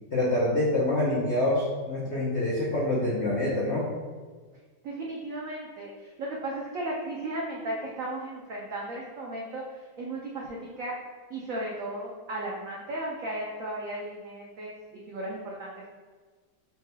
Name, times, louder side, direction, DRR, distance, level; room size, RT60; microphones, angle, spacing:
voice 1, 0.1-3.8, left 1 dB, 60° left, -6 dB, 0.7 m, -26 dB
voice 2, 4.8-10.9 11.3-15.9, right 1 dB, 80° right, -3 dB, 0.7 m, -35 dB
5.8 x 3.1 x 2.2 m, 1.4 s
omnidirectional pair, 2.1 m